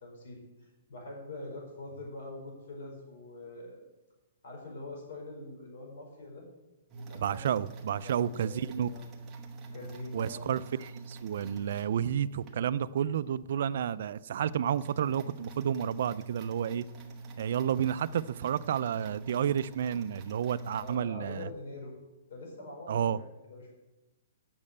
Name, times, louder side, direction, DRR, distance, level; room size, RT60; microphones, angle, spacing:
voice 1, 0.0-3.8 4.4-6.4 6.9-7.5 8.0-9.0 9.7-10.5 20.8-21.9 22.3-23.7, left 2 dB, 60° left, 4.7 m, -44 dB
sound 1, 6.9-12.6 13.1-13.2 13.7-13.8 14.0-21.0, right 3 dB, 15° right, 1.0 m, -45 dB
voice 2, 7.1-8.9 10.1-16.9 17.4-21.5 22.9-23.2, right 9 dB, 50° right, 0.3 m, -31 dB
8.7 x 6.4 x 8.5 m
hypercardioid pair, 170°, 0 cm